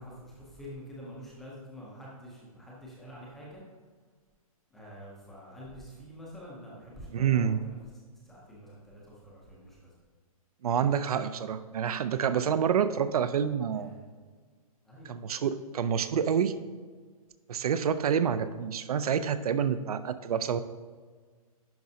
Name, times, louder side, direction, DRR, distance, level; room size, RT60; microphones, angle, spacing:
voice 1, 0.0-3.6 4.7-7.8 8.2-9.9 13.7-14.1 14.8-15.2, equal, ahead, -6 dB, 0.5 m, -47 dB
voice 2, 7.1-7.6 10.6-14.0 15.1-16.6 17.5-20.6, right 7 dB, 75° right, 13 dB, 0.5 m, -28 dB
10.5 x 5.1 x 2.7 m, 1.5 s
hypercardioid pair, 180°, 19 cm